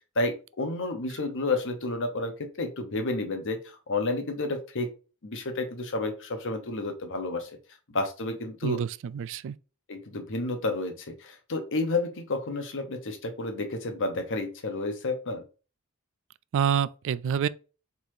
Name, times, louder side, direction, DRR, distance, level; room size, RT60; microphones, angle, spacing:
voice 1, 0.2-3.6 3.9-4.9 5.2-7.5 7.9-8.8 9.9-15.4, left 2 dB, 60° left, 1.0 m, -30 dB
voice 2, 8.6-9.6 16.5-17.5, right 8 dB, 60° right, 0.3 m, -27 dB
4.7 x 4.0 x 2.8 m
head